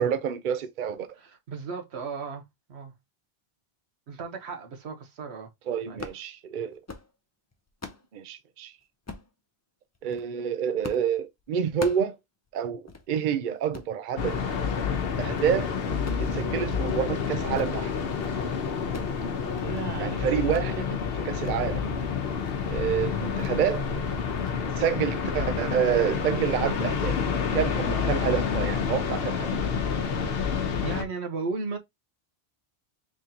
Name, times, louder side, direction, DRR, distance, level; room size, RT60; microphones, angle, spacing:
voice 1, 0.0-1.1 5.7-6.8 8.1-8.7 10.0-12.2 12.5-14.4 15.2-15.7 16.2-17.9 20.0-21.8 22.7-23.8 24.8-27.2 27.5-29.5, right 8 dB, 55° right, 0.7 m, -28 dB
voice 2, 1.1-2.4 2.7-2.9 4.1-5.5 5.9-6.0 19.6-20.5 30.8-31.8, right 4 dB, 85° right, 1.2 m, -35 dB
sound 1, 5.9-6.2 6.7-7.1 7.5-8.1 9.1-9.3 9.9-10.3 10.8-11.1 11.4-12.1 12.5-12.6 12.9-13.0 13.6-13.9 14.4-14.7 15.1-15.5 15.9-17.1 17.4-17.8 18.1-18.4 18.6-19.2 19.5-19.9 20.5-20.7 21.1-21.6 21.9-22.0 22.4-22.7 23.4-23.6 23.9-24.1 24.4-24.6, left 3 dB, 30° left, 0.3 m, -42 dB
sound 2, 14.2-31.0, left 6 dB, 70° left, 1.0 m, -28 dB
3.8 x 3.7 x 2.7 m
omnidirectional pair, 1.1 m